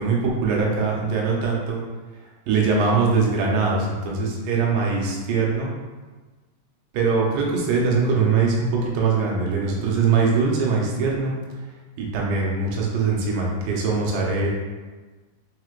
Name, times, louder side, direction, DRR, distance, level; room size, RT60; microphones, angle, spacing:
voice 1, 0.0-1.8 2.5-5.7 6.9-11.3 12.0-14.5, right 4 dB, 85° right, -2 dB, 3.0 m, -22 dB
6.6 x 3.1 x 2.5 m, 1.3 s
omnidirectional pair, 4.7 m